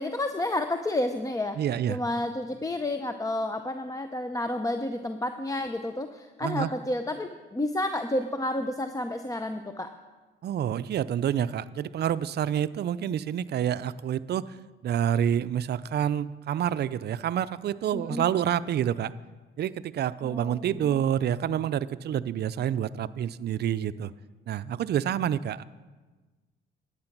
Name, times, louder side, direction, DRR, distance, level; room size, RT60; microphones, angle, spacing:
voice 1, 0.0-1.6 1.9-9.9 17.9-18.2 20.2-20.9, left 1 dB, 15° left, 8 dB, 0.6 m, -30 dB
voice 2, 1.6-2.0 6.4-6.7 10.4-14.6 14.8-19.1 19.6-24.1 24.5-25.6, right 10 dB, 55° right, 16 dB, 0.5 m, -28 dB
11.5 x 9.6 x 6.0 m, 1.3 s
cardioid pair, 90°, 20 cm